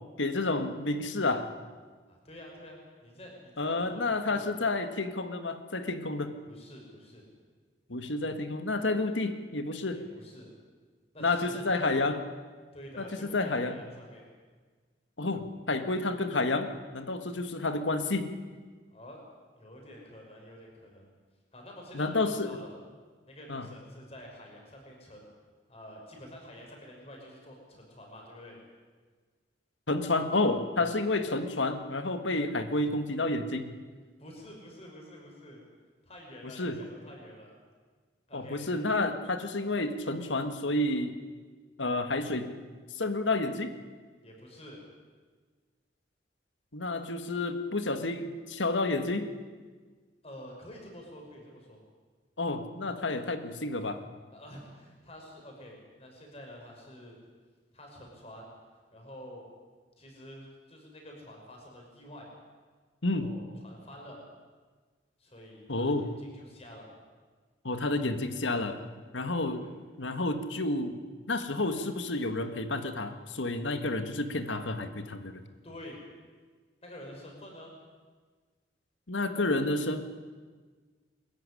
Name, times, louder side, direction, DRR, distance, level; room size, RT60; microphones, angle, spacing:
voice 1, 0.2-1.5 3.6-6.3 7.9-10.0 11.2-12.2 13.0-13.7 15.2-18.3 21.9-22.5 23.5-23.7 29.9-33.7 36.4-36.8 38.3-41.2 41.8-42.6 42.9-43.7 46.7-49.3 52.4-54.0 63.0-63.3 65.7-66.1 67.6-68.8 69.1-69.6 70.0-71.0 71.3-75.4 79.1-80.0, left 2 dB, 90° left, 8 dB, 1.8 m, -30 dB
voice 2, 2.1-4.7 6.5-7.3 9.9-10.5 11.1-12.1 12.7-14.3 18.9-19.2 19.6-21.1 21.5-22.7 23.3-25.3 25.7-28.6 34.2-35.6 36.0-37.5 38.3-38.6 44.2-44.8 50.2-51.8 54.3-57.2 57.7-58.5 58.9-59.5 60.0-62.3 63.2-64.2 65.2-66.9 69.6-69.8 75.6-76.0 76.8-77.7, equal, 35° left, 0 dB, 5.9 m, -48 dB
23.0 x 14.0 x 9.9 m, 1.5 s
head